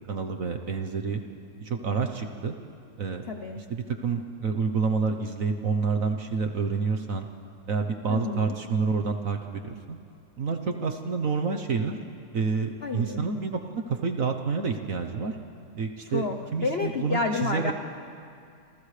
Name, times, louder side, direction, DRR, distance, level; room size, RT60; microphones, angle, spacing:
voice 1, 0.1-1.2 1.6-2.5 3.0-3.3 3.5-7.3 7.7-10.0 10.4-12.0 12.3-15.4 15.7-17.7, right 5 dB, 50° right, 5 dB, 1.0 m, -28 dB
voice 2, 3.3-3.7 8.1-8.5 12.8-13.2 16.1-17.7, left 4 dB, 75° left, 5 dB, 0.5 m, -30 dB
29.5 x 27.0 x 3.3 m, 2.5 s
omnidirectional pair, 2.3 m